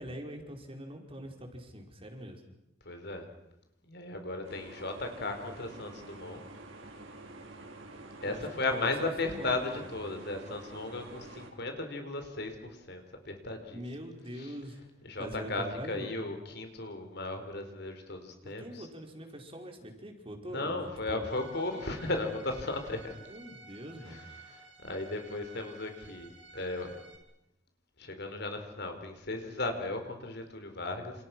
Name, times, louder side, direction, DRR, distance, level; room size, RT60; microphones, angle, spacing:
voice 1, 0.0-2.4 8.2-10.0 13.7-14.8 15.2-16.1 18.4-21.3 23.3-24.3, equal, 30° right, 3 dB, 4.8 m, -43 dB
voice 2, 2.8-3.3 3.9-6.4 8.2-13.8 14.4-14.5 15.0-18.9 20.5-23.2 24.1-27.0 28.0-31.1, left 2 dB, 60° left, 6 dB, 4.6 m, -36 dB
sound 1, 4.4-11.5, right 2 dB, 85° right, 5.4 m, -48 dB
Bowed string instrument, 21.2-27.2, right 4 dB, 65° right, 7.5 m, -53 dB
29.0 x 29.0 x 6.2 m, 0.85 s
head